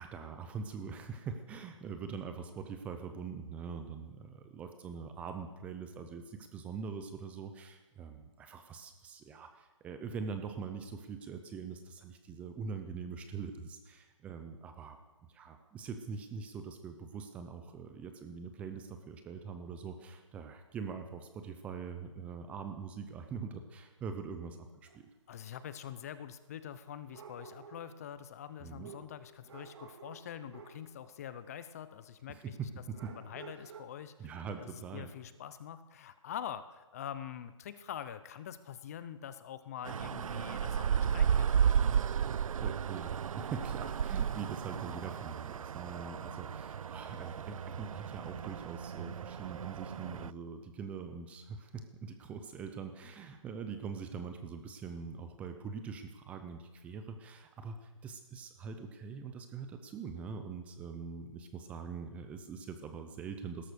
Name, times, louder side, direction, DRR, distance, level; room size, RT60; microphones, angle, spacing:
voice 1, 0.0-15.0 15.3-25.1 28.6-28.9 32.3-33.1 34.2-35.1 42.6-63.7, right 5 dB, 10° right, 7 dB, 0.6 m, -43 dB
sound 1, 24.9-25.0 27.1-28.0 28.8-30.9 32.9-33.8, right 6 dB, 55° right, 2.5 m, -51 dB
voice 2, 25.3-32.6 33.1-34.1 34.6-41.5, left 9 dB, 30° left, 13 dB, 0.7 m, -45 dB
sound 2, 39.8-50.3, right 8 dB, 90° right, 0.4 m, -33 dB
17.0 x 13.0 x 6.4 m, 1.2 s
hypercardioid pair, 165°, 17 cm